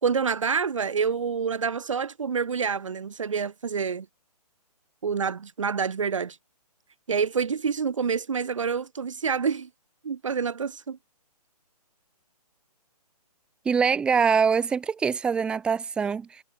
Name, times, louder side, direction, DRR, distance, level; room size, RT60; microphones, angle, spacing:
voice 1, 0.0-4.1 5.0-6.4 7.1-9.7 10.0-11.0, right 6 dB, 50° right, 2.7 m, -27 dB
voice 2, 13.6-16.4, right 6 dB, 5° right, 5.8 m, -24 dB
hypercardioid pair, 175°, 21 cm